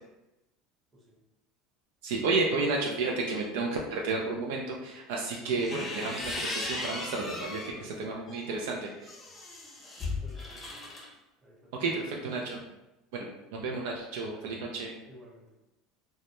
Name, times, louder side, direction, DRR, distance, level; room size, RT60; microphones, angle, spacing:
voice 1, 2.0-9.1 11.8-12.6 13.1-14.9, right 3 dB, 80° right, -1 dB, 0.3 m, -32 dB
sound 1, 5.5-7.8 8.3-11.1, left 2 dB, 25° left, 0.7 m, -37 dB
voice 2, 7.7-8.0 10.2-11.0 11.4-11.9 14.3-14.6 15.1-15.5, equal, 30° right, -3 dB, 0.8 m, -53 dB
2.1 x 2.1 x 2.8 m, 0.96 s
supercardioid pair, 90°, 0 cm